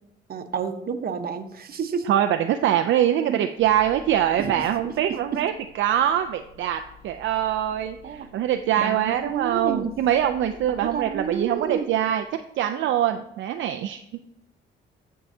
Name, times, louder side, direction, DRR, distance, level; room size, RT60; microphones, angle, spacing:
voice 1, 0.3-2.1 3.2-3.5 4.4-4.7 5.1-5.5 8.0-8.3 8.8-9.9 10.8-11.9, right 6 dB, 50° right, 7 dB, 0.9 m, -30 dB
voice 2, 2.1-5.5 5.8-12.2 12.6-14.0, right 11 dB, 70° right, 6 dB, 0.4 m, -23 dB
sound 1, 3.6-12.3, equal, 40° left, 2.4 m, -52 dB
13.0 x 4.7 x 2.7 m, 0.80 s
cardioid pair, 90°, 20 cm